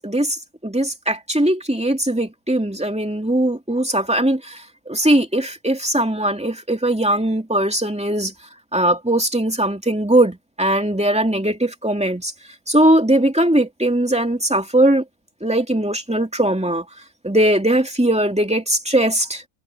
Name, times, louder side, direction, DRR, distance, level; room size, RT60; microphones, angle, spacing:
voice 1, 0.0-8.3 8.7-12.3 12.7-15.0 15.4-16.9 17.2-19.4, right 1 dB, 5° right, 2.6 m, -20 dB
omnidirectional pair, 1.4 m